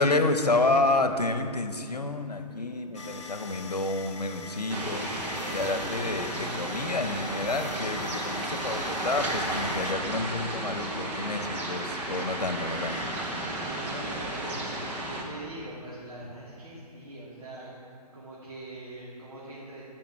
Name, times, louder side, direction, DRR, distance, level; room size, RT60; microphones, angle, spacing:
voice 1, 0.0-13.0, left 2 dB, 75° left, 8 dB, 1.0 m, -29 dB
sound 1, 2.9-9.9, left 4 dB, 45° left, 0.9 m, -43 dB
sound 2, 4.7-15.2, right 1 dB, 10° right, 0.9 m, -33 dB
voice 2, 13.5-17.7 18.0-19.9, right 1 dB, 55° right, -9 dB, 2.7 m, -42 dB
16.0 x 6.0 x 6.2 m, 2.4 s
figure-of-eight pair, 135°, 21 cm